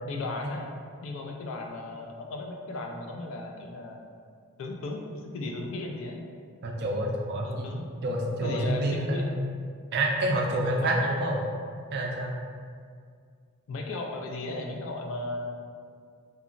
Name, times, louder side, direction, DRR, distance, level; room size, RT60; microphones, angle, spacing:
voice 1, 0.0-0.7 1.0-4.0 4.6-6.2 7.4-7.9 8.4-9.3 10.8-11.3 13.7-15.6, left 2 dB, 60° left, 1 dB, 0.3 m, -36 dB
voice 2, 6.6-7.7 8.0-9.2 9.9-11.4 11.9-12.4, right 1 dB, 50° right, 0 dB, 0.3 m, -27 dB
2.8 x 2.3 x 2.5 m, 2.1 s
head